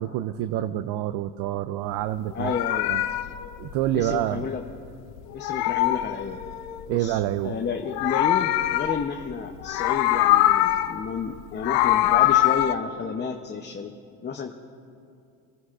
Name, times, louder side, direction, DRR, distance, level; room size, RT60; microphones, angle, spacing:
voice 1, 0.0-3.0 3.6-4.5 6.9-7.5, right 13 dB, 55° right, 13 dB, 0.5 m, -27 dB
Meow, 2.2-4.9 5.2-6.9 7.7-9.3 9.6-11.1 11.4-12.7, left 14 dB, 90° left, 0.6 m, -23 dB
voice 2, 2.3-2.9 3.9-4.6 5.3-6.4 6.9-13.9 14.2-14.5, left 6 dB, 25° left, 3 dB, 0.7 m, -31 dB
27.0 x 11.0 x 2.5 m, 2.4 s
supercardioid pair, 100°, 47 cm